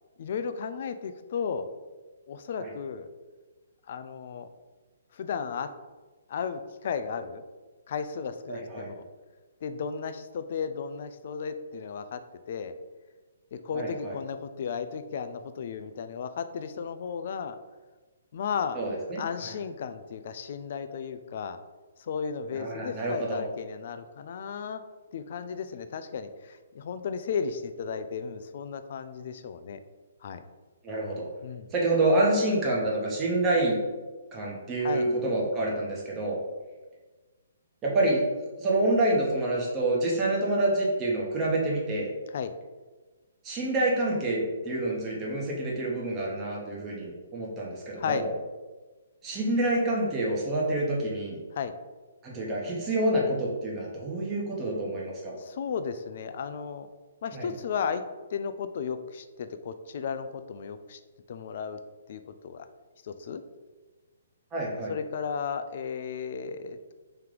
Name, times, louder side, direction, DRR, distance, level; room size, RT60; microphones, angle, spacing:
voice 1, 0.2-1.6 2.3-3.1 3.9-4.5 5.1-5.7 6.3-7.4 7.9-9.0 9.6-12.2 12.5-12.8 13.5-17.6 18.3-18.8 19.2-21.6 22.0-24.8 25.1-29.8 30.2-30.4 31.4-31.7 34.8-35.1 42.3-42.5 48.0-48.2 51.5-51.7 55.4-56.9 57.2-58.0 58.3-61.0 61.3-61.8 62.1-62.7 63.0-63.4 64.9-66.9, left 6 dB, 50° left, 10 dB, 0.3 m, -34 dB
voice 2, 8.5-8.9 13.7-14.2 18.7-19.5 22.5-23.4 30.8-31.3 31.7-33.8 34.3-36.4 37.8-38.2 38.6-42.1 43.4-48.3 49.2-51.4 52.2-55.3 57.3-57.5 64.5-64.9, right 1 dB, 20° right, -4 dB, 1.0 m, -27 dB
3.3 x 2.8 x 3.7 m, 1.3 s
figure-of-eight pair, 135°, 0 cm